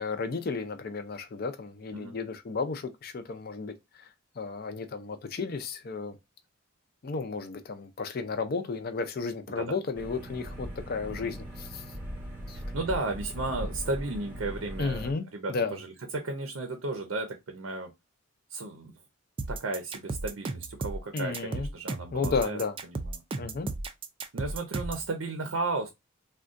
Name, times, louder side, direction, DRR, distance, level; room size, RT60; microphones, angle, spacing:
voice 1, 0.0-4.1 4.4-6.2 7.0-11.8 12.5-12.6 14.8-15.8 21.1-21.7 22.1-22.8 23.4-23.7, left 4 dB, 50° left, 0.5 m, -33 dB
voice 2, 9.5-9.8 11.1-11.3 12.5-17.9 18.5-18.9 19.5-23.2 24.3-25.9, right 2 dB, 80° right, 0.6 m, -34 dB
sound 1, 9.9-15.1, equal, 10° right, 0.8 m, -39 dB
sound 2, 19.4-25.1, right 3 dB, 25° right, 0.3 m, -34 dB
3.6 x 2.2 x 2.5 m
head